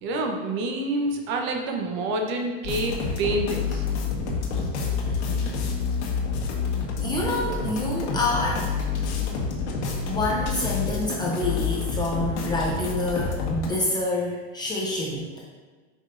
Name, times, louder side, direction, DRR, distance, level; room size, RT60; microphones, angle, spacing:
voice 1, 0.0-3.8, right 2 dB, 35° right, 3 dB, 0.8 m, -27 dB
sound 1, 2.6-13.7, left 5 dB, 75° left, 1.6 m, -28 dB
voice 2, 7.0-8.7 10.1-15.4, left 2 dB, 15° left, -3 dB, 0.5 m, -27 dB
8.3 x 5.3 x 2.5 m, 1.4 s
supercardioid pair, 165°, 34 cm